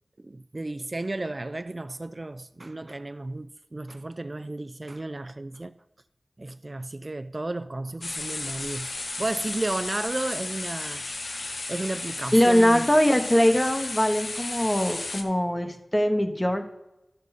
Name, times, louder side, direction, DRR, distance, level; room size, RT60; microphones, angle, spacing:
voice 1, 0.2-5.7 6.4-11.0 11.7-12.8, right 2 dB, 40° right, 0.4 m, -33 dB
sound 1, 8.0-15.2, left 2 dB, 85° left, 0.9 m, -34 dB
voice 2, 12.3-16.6, equal, 20° left, 1.2 m, -22 dB
12.0 x 6.5 x 4.1 m
wide cardioid pair, 55°, 0 cm